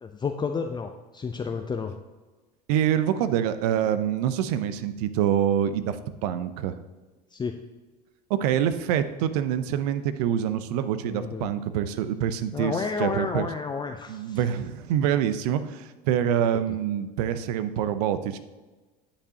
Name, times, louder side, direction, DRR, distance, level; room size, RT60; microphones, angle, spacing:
voice 1, 0.0-2.0 7.3-7.5 11.0-11.5 12.5-14.4 16.7-16.8, left 5 dB, 20° left, 4 dB, 0.6 m, -31 dB
voice 2, 2.7-6.8 8.3-13.5 14.1-18.4, right 10 dB, 70° right, 12 dB, 0.7 m, -26 dB
9.9 x 8.3 x 2.8 m, 1.2 s
hypercardioid pair, 75°, 21 cm